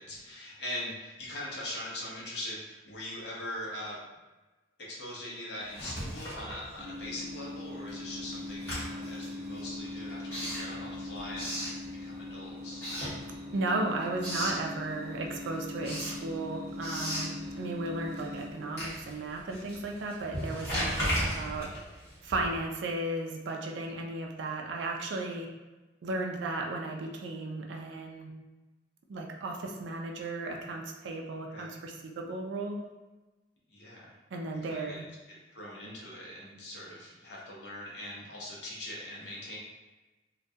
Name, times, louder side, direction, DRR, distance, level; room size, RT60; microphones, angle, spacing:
voice 1, 0.0-4.0 4.8-12.9 21.3-21.6 31.5-31.7 33.7-34.2 34.5-35.0 35.3-39.6, left 1 dB, 60° left, -5 dB, 0.7 m, -42 dB
Writing, 5.6-7.2 7.5-12.3 12.7-13.7 14.0-14.7 15.1-22.7, equal, 10° left, 1.2 m, -37 dB
sound 1, 6.8-19.1, left 2 dB, 20° right, 0.6 m, -41 dB
voice 2, 13.5-21.7 22.2-25.5 26.0-28.3 29.1-32.8 34.3-35.1, right 2 dB, 70° right, 1 dB, 0.3 m, -35 dB
2.2 x 2.2 x 2.6 m, 1.1 s
head